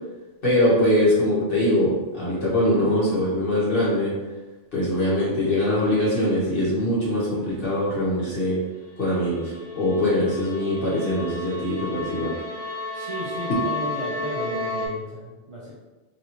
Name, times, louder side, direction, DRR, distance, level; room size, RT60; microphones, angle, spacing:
voice 1, 0.4-4.1 4.7-8.6 9.0-12.3, left 1 dB, 50° left, -8 dB, 1.5 m, -22 dB
sound 1, 9.0-14.9, left 2 dB, 90° left, 1.1 m, -33 dB
voice 2, 12.9-15.7, right 1 dB, 40° right, -6 dB, 0.4 m, -33 dB
3.3 x 3.0 x 2.8 m, 1.2 s
omnidirectional pair, 1.2 m